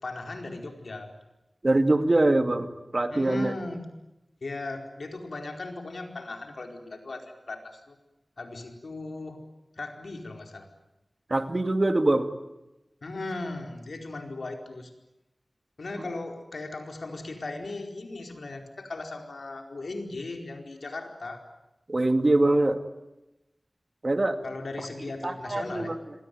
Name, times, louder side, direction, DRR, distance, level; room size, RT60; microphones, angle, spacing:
voice 1, 0.0-1.1 3.1-3.9 4.4-8.0 8.4-9.4 9.8-10.7 13.0-14.9 15.8-21.4 24.4-25.9, left 2 dB, 90° left, 4 dB, 4.6 m, -37 dB
voice 2, 1.6-3.5 11.3-12.3 21.9-22.8 24.0-24.4 25.2-26.0, right 2 dB, 45° right, 8 dB, 2.2 m, -23 dB
27.5 x 22.0 x 9.4 m, 0.94 s
wide cardioid pair, 75°, 0 cm